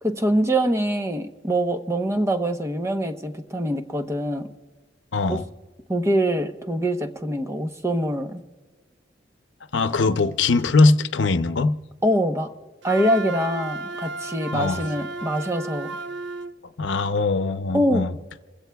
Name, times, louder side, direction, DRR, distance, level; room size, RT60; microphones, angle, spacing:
voice 1, 0.0-4.5 5.3-5.4 5.9-8.4 12.0-12.5 12.8-16.0 17.7-18.0, right 1 dB, 15° right, 0.9 m, -24 dB
voice 2, 5.1-5.4 9.7-11.8 14.5-14.9 16.8-18.2, left 3 dB, 90° left, 0.6 m, -21 dB
Wind instrument woodwind instrument, 12.8-16.5, right 3 dB, 75° right, 0.6 m, -33 dB
27.0 x 16.0 x 2.3 m
head